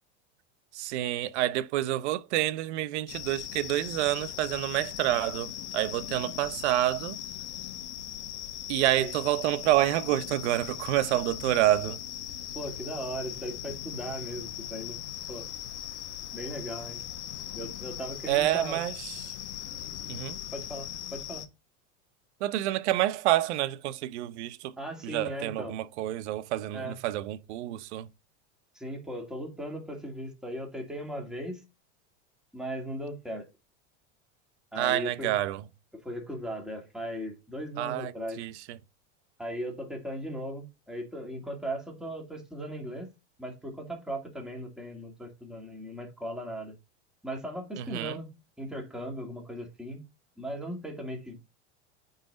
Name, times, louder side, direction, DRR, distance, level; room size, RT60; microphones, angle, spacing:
voice 1, 0.7-7.2 8.7-12.0 18.3-19.3 20.1-20.4 22.4-24.7 25.0-28.1 34.8-35.6 37.8-38.8 47.8-48.2, right 14 dB, 75° right, 0.9 m, -28 dB
sound 1, 3.1-21.5, left 11 dB, 85° left, 1.3 m, -39 dB
voice 2, 12.5-15.0 15.3-15.5 16.3-17.0 17.6-18.8 20.5-21.4 24.8-25.8 26.7-27.0 28.8-31.6 32.5-33.5 34.7-35.4 36.0-38.4 39.4-43.1 43.4-46.8 47.2-50.0 50.4-51.4, equal, ahead, 2.2 m, -38 dB
9.1 x 4.0 x 3.9 m
supercardioid pair, 145°, 34 cm